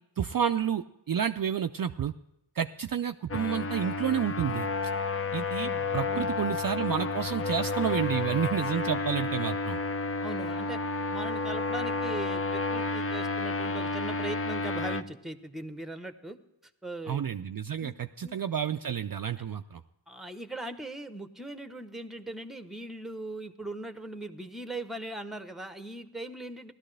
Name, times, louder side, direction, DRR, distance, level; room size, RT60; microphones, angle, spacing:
voice 1, 0.2-2.1 2.6-4.7 5.3-9.8 17.1-19.8, right 8 dB, 50° right, 8 dB, 0.4 m, -30 dB
sound 1, 3.3-15.0, left 3 dB, 30° left, 0.5 m, -31 dB
voice 2, 5.6-6.6 10.2-10.8 11.1-16.4 16.8-17.2 17.8-17.9 18.2-18.4 20.1-26.7, right 2 dB, ahead, 9 dB, 0.9 m, -40 dB
16.5 x 12.5 x 3.3 m, 0.89 s
wide cardioid pair, 60°, 46 cm